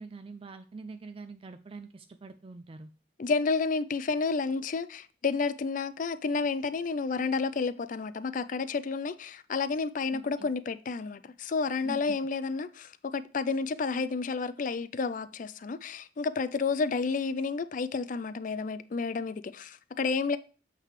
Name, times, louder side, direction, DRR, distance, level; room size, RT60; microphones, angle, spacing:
voice 1, 0.0-2.9 10.1-10.5 11.8-12.2, right 4 dB, 30° right, 0.4 m, -44 dB
voice 2, 3.2-20.4, left 4 dB, 45° left, 0.4 m, -31 dB
7.4 x 3.3 x 4.8 m
head